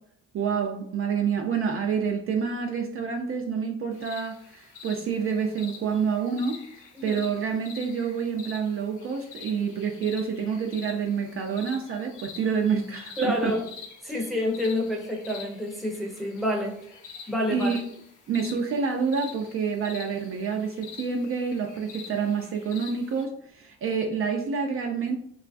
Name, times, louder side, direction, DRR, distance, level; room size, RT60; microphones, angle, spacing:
voice 1, 0.3-6.6 7.0-13.5 17.5-17.8 18.3-25.2, right 6 dB, 45° right, 3 dB, 0.4 m, -28 dB
sound 1, 3.9-23.2, left 5 dB, 80° left, 0.7 m, -46 dB
voice 2, 13.2-13.6 14.0-16.8 17.3-17.7, left 1 dB, ahead, -1 dB, 0.6 m, -28 dB
3.0 x 2.3 x 2.4 m, 0.70 s
cardioid pair, 90°, 30 cm